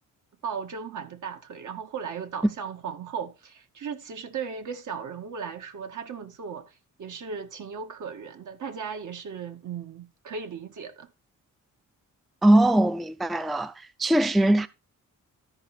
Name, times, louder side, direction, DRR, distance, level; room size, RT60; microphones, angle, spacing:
voice 1, 0.4-11.1, right 6 dB, 65° right, 2.1 m, -36 dB
voice 2, 12.4-13.7 14.0-14.7, right 1 dB, ahead, 0.4 m, -20 dB
13.0 x 5.6 x 4.5 m
wide cardioid pair, 140°, 32 cm